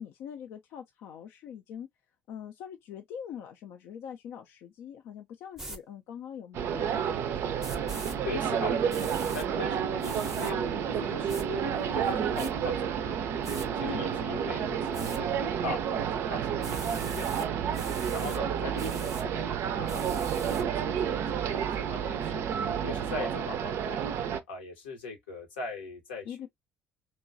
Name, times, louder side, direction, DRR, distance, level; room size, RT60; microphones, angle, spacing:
voice 1, 0.0-1.9 2.3-8.1 13.8-14.0 26.2-26.5, left 8 dB, 60° left, 0.3 m, -43 dB
sound 1, 5.6-5.8 7.6-8.2 8.9-9.5 10.0-10.5 11.3-11.5 12.0-12.5 13.4-13.7 14.9-15.2 16.6-17.5 17.7-18.4 18.8-19.3 19.9-20.6, right 1 dB, 10° right, 0.6 m, -42 dB
sound 2, 6.5-24.4, right 8 dB, 50° right, 0.4 m, -30 dB
voice 2, 8.2-10.6 11.0-13.2 13.8-17.5 18.1-22.4 22.8-24.0 24.5-26.3, left 3 dB, 80° left, 0.8 m, -40 dB
2.9 x 2.2 x 2.4 m
figure-of-eight pair, 50°, 5 cm